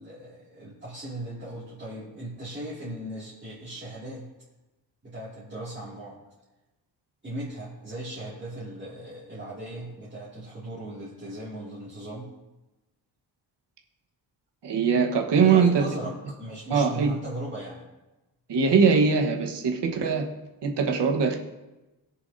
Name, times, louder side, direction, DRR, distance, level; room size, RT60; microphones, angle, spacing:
voice 1, 0.0-4.3 5.0-6.2 7.2-12.3 15.4-17.9, right 1 dB, 25° right, -9 dB, 2.6 m, -38 dB
voice 2, 14.6-15.9 16.7-17.1 18.5-20.3 20.6-21.4, right 5 dB, 80° right, 1 dB, 1.4 m, -21 dB
21.0 x 7.1 x 2.8 m, 1.0 s
wide cardioid pair, 175°, 41 cm